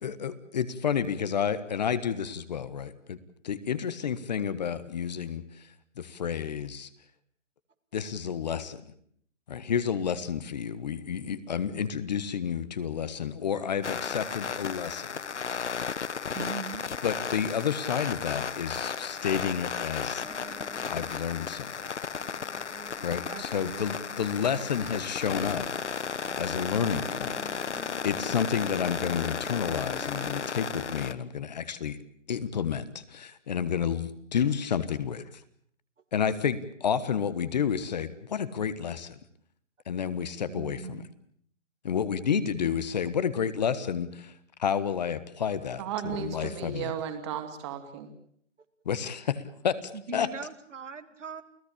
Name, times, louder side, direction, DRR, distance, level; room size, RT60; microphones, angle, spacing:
voice 1, 0.0-3.2 3.4-6.9 7.9-8.8 9.5-15.1 17.0-20.2 20.9-21.9 23.0-26.0 26.4-27.4 28.0-32.0 32.3-34.1 34.3-35.2 36.1-39.2 39.9-41.0 41.8-44.3 44.6-45.8 46.2-46.9 48.8-50.3, left 7 dB, 35° left, 15 dB, 1.3 m, -30 dB
sound 1, 13.8-31.1, left 6 dB, 70° left, 1.5 m, -34 dB
voice 2, 16.3-16.8 23.3-24.0 40.5-41.2 42.3-42.8 49.9-51.4, right 5 dB, 75° right, 9 dB, 2.6 m, -41 dB
sound 2, 20.1-30.4, left 1 dB, ahead, 2.3 m, -48 dB
voice 3, 45.8-48.1, right 8 dB, 25° right, 7 dB, 2.7 m, -34 dB
29.5 x 16.5 x 8.6 m, 0.64 s
hypercardioid pair, 160°, 37 cm